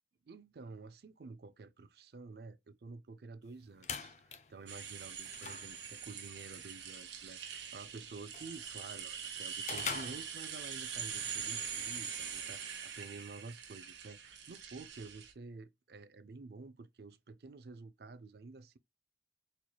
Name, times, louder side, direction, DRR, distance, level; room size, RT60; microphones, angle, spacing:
voice 1, 0.3-4.1 4.5-18.8, right 4 dB, 60° right, 0.4 m, -50 dB
sound 1, 3.4-10.9, left 6 dB, 40° left, 0.5 m, -47 dB
sound 2, 4.7-15.3, right 7 dB, 90° right, 0.9 m, -43 dB
4.3 x 3.0 x 2.3 m
head